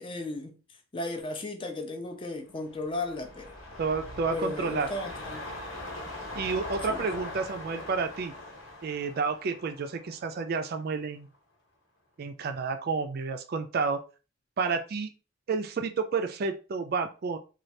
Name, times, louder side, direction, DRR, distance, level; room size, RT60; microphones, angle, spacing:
voice 1, 0.0-3.5 4.3-5.5 6.9-7.1, left 2 dB, 25° left, 0.4 m, -35 dB
sound 1, 2.5-11.0 11.3-11.4, left 1 dB, 80° left, 1.3 m, -41 dB
voice 2, 3.8-4.9 6.4-8.3 8.8-11.3 12.2-14.0 14.6-15.1 15.5-17.4, right 4 dB, 45° right, 0.3 m, -30 dB
3.2 x 2.3 x 2.6 m
head